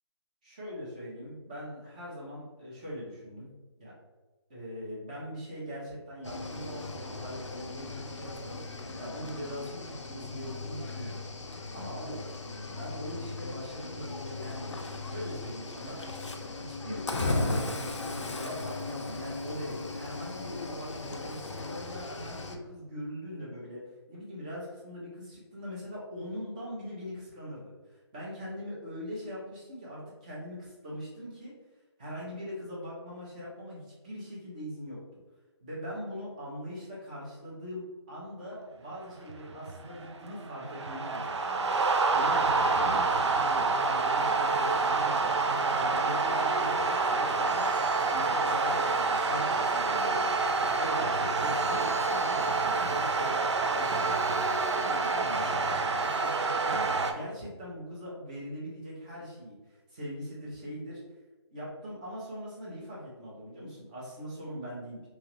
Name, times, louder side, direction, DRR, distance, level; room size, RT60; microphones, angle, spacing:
voice 1, 0.4-3.5 3.8-3.9 4.5-8.6 9.0-11.2 11.7-14.7 15.1-16.0 16.5-23.8 24.1-31.5 32.0-35.0 35.6-45.3 45.8-50.3 50.8-56.1 56.6-59.5 59.9-61.0 61.5-65.1, equal, 15° right, -6 dB, 0.6 m, -41 dB
Cricket / Waves surf, 6.2-22.6, left 2 dB, 85° left, 0.5 m, -37 dB
sound 1, 39.2-57.1, right 3 dB, 75° right, 0.4 m, -27 dB
2.9 x 2.4 x 3.0 m, 1.2 s
figure-of-eight pair, 165°, 15 cm